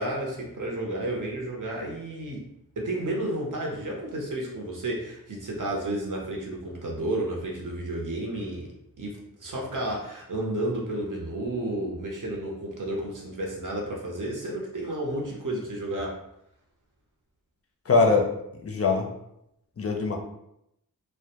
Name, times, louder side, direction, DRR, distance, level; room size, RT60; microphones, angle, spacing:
voice 1, 0.0-2.4 2.8-8.7 9.0-16.2, right 1 dB, 60° right, -2 dB, 0.7 m, -31 dB
voice 2, 17.9-18.3 18.6-19.1 19.8-20.2, left 4 dB, 40° left, 2 dB, 0.4 m, -22 dB
2.1 x 2.1 x 2.8 m, 0.80 s
wide cardioid pair, 70°, 35 cm